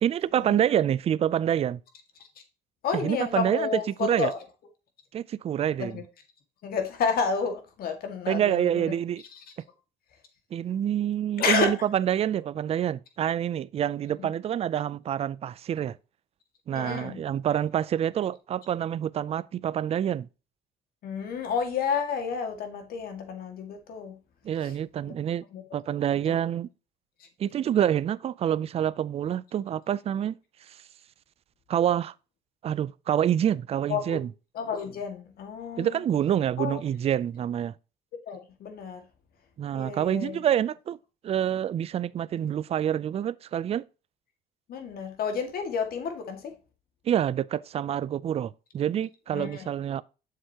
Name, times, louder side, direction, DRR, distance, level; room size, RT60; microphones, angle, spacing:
voice 1, 0.0-1.8 3.0-3.7 4.0-4.3 5.1-6.0 8.3-9.2 10.5-16.0 16.7-20.3 24.4-25.4 25.7-26.7 27.4-30.4 30.7-30.8 31.7-32.1 32.6-34.3 35.8-37.7 39.6-41.0 41.2-43.9 47.1-50.0, right 10 dB, 35° right, 0.4 m, -27 dB
voice 2, 2.8-4.4 5.8-6.0 6.6-8.9 9.3-9.4 11.4-11.7 14.2-14.3 16.7-17.3 21.0-24.2 24.6-24.8 25.1-25.2 25.5-25.6 26.3-26.4 27.2-27.3 33.9-34.2 34.5-36.0 36.6-36.8 38.2-39.1 39.7-40.4 42.4-42.5 44.7-46.5 49.3-49.7, left 6 dB, 60° left, 2.0 m, -31 dB
7.7 x 6.7 x 2.9 m
cardioid pair, 110°, 17 cm